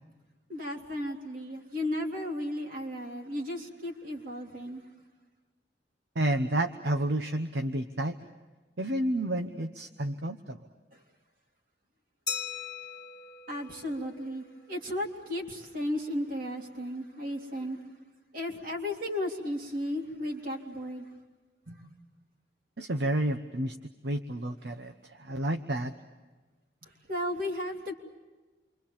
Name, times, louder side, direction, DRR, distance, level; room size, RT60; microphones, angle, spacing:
voice 1, 0.5-4.8 13.5-17.8 18.3-21.1 21.7-21.8 26.8-27.9, left 1 dB, 50° right, 1 dB, 3.3 m, -34 dB
voice 2, 6.1-8.2 8.8-10.6 22.8-23.8 24.0-25.9, right 1 dB, 70° right, 7 dB, 1.0 m, -30 dB
Glass, 12.3-14.7, left 6 dB, 25° left, 2.3 m, -39 dB
28.5 x 24.5 x 7.3 m, 1.3 s
head